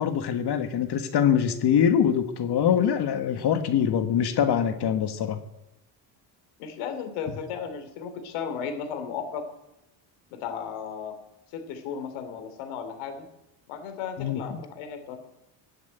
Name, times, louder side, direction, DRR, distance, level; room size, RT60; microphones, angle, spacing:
voice 1, 0.0-5.4 14.2-14.4, left 8 dB, 55° left, 8 dB, 1.6 m, -23 dB
voice 2, 6.6-9.4 10.3-11.1 11.5-13.3 13.7-15.2, left 7 dB, 85° left, 7 dB, 3.2 m, -35 dB
15.5 x 8.2 x 9.2 m, 0.89 s
cardioid pair, 105°, 48 cm